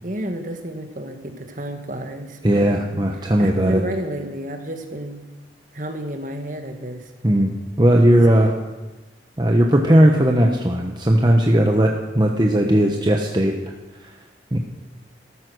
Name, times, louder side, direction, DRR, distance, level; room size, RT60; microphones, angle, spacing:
voice 1, 0.0-2.7 3.4-5.2 5.7-7.1 8.1-8.5, right 1 dB, 45° right, 5 dB, 1.7 m, -30 dB
voice 2, 2.4-3.8 7.2-8.5 9.4-13.6 14.5-14.6, right 1 dB, 25° right, 1 dB, 1.0 m, -17 dB
14.5 x 13.0 x 6.3 m, 1.1 s
head